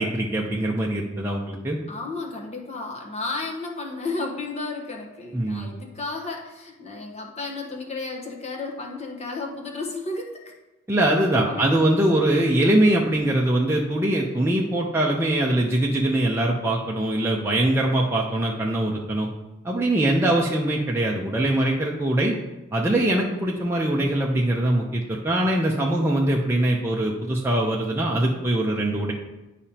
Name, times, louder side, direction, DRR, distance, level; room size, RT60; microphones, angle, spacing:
voice 1, 0.0-1.8 5.3-5.7 10.9-19.3 19.6-22.4 22.7-29.1, right 1 dB, 10° right, -3 dB, 0.6 m, -22 dB
voice 2, 1.9-10.4 11.4-11.8, left 3 dB, 30° left, 1 dB, 1.1 m, -33 dB
10.5 x 4.9 x 2.9 m, 1.1 s
head